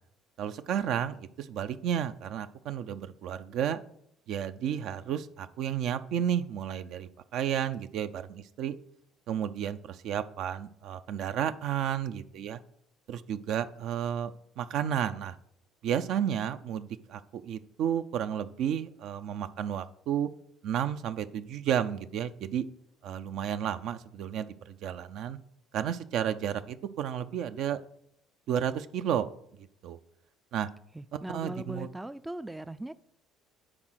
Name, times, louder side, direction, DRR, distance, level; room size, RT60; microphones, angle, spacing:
voice 1, 0.4-3.8 4.3-8.8 9.3-12.6 13.1-15.4 15.8-20.3 20.6-22.7 23.0-25.4 25.7-27.8 28.5-29.3 29.8-30.0 30.5-30.7 31.3-31.9, right 9 dB, 65° right, 0.5 m, -32 dB
voice 2, 30.9-32.9, right 1 dB, 10° right, 0.3 m, -39 dB
9.8 x 4.0 x 6.3 m
supercardioid pair, 85°, 0 cm